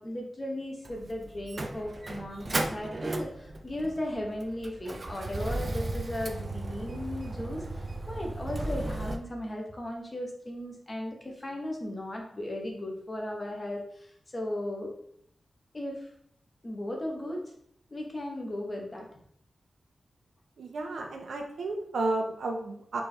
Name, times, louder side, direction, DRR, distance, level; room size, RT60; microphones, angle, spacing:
voice 1, 0.0-14.9 15.7-16.1 16.6-17.4 17.9-19.1, left 1 dB, 25° left, 0 dB, 0.9 m, -36 dB
Motor vehicle (road), 0.8-9.2, right 2 dB, 30° right, 0.4 m, -35 dB
voice 2, 20.6-23.0, right 2 dB, 90° right, 2 dB, 0.7 m, -32 dB
4.1 x 3.4 x 3.2 m, 0.67 s
wide cardioid pair, 175°, 0 cm